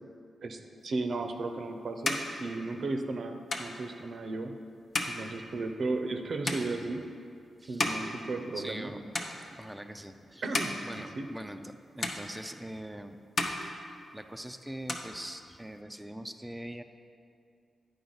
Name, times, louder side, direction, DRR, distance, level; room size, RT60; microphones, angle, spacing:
voice 1, 0.4-4.5 5.1-7.0 7.7-8.9 10.4-10.8 11.2-11.3, right 3 dB, 65° right, 5 dB, 0.6 m, -35 dB
sound 1, 1.2-8.9 9.1-9.8 10.3-11.7 12.0-12.9 13.2-14.4 14.7-15.8, left 2 dB, 55° left, 0.8 m, -36 dB
voice 2, 8.5-9.1 9.5-10.5 10.9-13.2 14.1-16.8, right 1 dB, 5° right, 6 dB, 0.4 m, -42 dB
8.7 x 5.1 x 3.9 m, 2.4 s
supercardioid pair, 40°, 0 cm